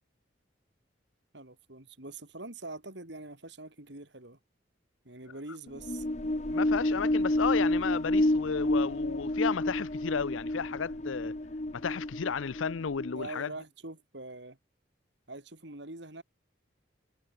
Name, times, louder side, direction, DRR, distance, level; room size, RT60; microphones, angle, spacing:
voice 1, 1.3-4.4 5.0-6.1 13.1-14.6 15.3-16.2, right 2 dB, 65° right, 3.4 m, -44 dB
sound 1, 5.7-13.4, left 1 dB, 35° left, 1.1 m, -30 dB
voice 2, 6.5-11.3 11.7-13.5, left 6 dB, 90° left, 0.6 m, -33 dB
head